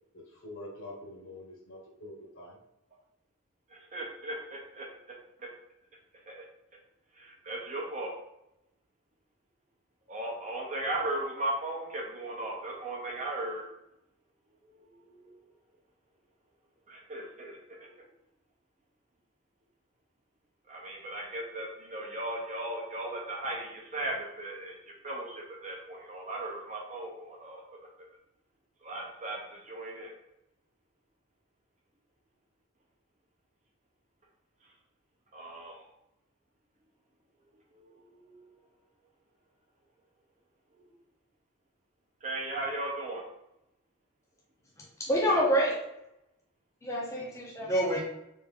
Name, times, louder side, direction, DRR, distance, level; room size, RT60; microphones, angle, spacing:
voice 1, 0.4-2.6, left 1 dB, 65° left, -3 dB, 1.2 m, -45 dB
voice 2, 3.7-5.5 6.3-6.4 7.1-8.1 10.1-13.7 14.6-15.5 16.9-18.1 20.7-27.8 28.8-30.1 34.6-34.7 35.3-35.9 37.7-38.5 40.7-40.9 42.2-43.2, right 2 dB, 35° right, -1 dB, 0.7 m, -37 dB
voice 3, 45.1-45.7 46.8-48.0, equal, 15° left, -5 dB, 0.6 m, -26 dB
3.3 x 2.5 x 3.5 m, 0.85 s
head